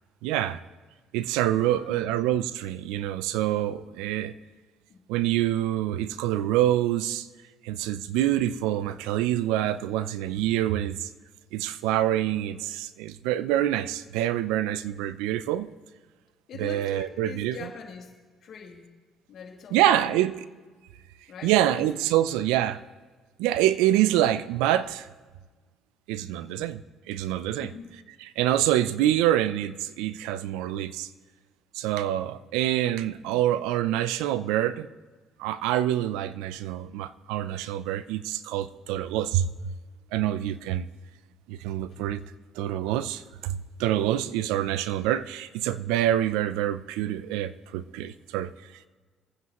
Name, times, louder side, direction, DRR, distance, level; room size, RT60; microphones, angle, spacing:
voice 1, 0.2-0.6 1.1-4.3 5.1-7.3 7.6-11.1 11.5-15.7 16.6-17.6 19.7-20.4 21.4-22.8 23.4-25.1 26.1-26.8 27.1-27.7 28.4-31.1 31.8-34.9 35.4-39.7 40.1-40.9 41.5-42.2 42.6-48.5, right 12 dB, 85° right, 15 dB, 0.5 m, -26 dB
voice 2, 1.5-2.1 4.9-5.0 16.5-18.1 18.4-18.9 19.3-20.2 21.3-22.0 26.4-26.7 27.6-27.9 33.2-33.5 41.9-42.0, left 6 dB, 60° left, 0 dB, 2.4 m, -44 dB
22.0 x 9.7 x 3.0 m, 1.4 s
supercardioid pair, 70°, 0 cm